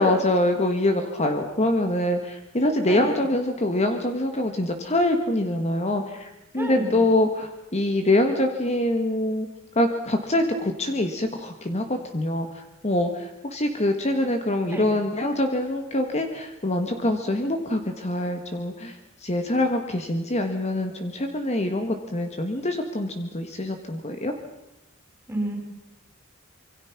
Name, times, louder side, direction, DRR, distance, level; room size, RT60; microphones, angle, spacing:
voice 1, 0.0-9.5 9.7-24.3, left 1 dB, 30° left, 6 dB, 1.6 m, -25 dB
voice 2, 6.6-6.9 14.7-14.9 25.3-25.6, right 1 dB, 10° right, 3 dB, 5.0 m, -29 dB
26.0 x 23.5 x 5.9 m, 0.95 s
head